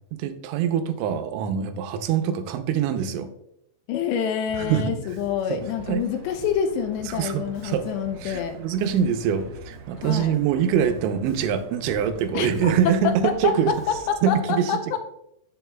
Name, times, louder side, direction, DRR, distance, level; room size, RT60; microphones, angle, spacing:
voice 1, 0.1-3.3 4.5-4.9 5.5-5.6 5.9-6.0 7.1-7.9 8.2-13.7 14.2-15.0, right 8 dB, 85° right, 8 dB, 3.1 m, -24 dB
voice 2, 3.9-8.6 10.0-10.4 12.3-12.9 13.4-13.5 14.1-15.0, left 7 dB, 80° left, 6 dB, 2.7 m, -27 dB
Bass guitar, 4.5-14.3, equal, 65° left, 3.1 m, -45 dB
sound 1, 5.6-14.1, right 3 dB, 70° right, 2.2 m, -47 dB
7.9 x 7.8 x 2.3 m, 0.78 s
omnidirectional pair, 5.3 m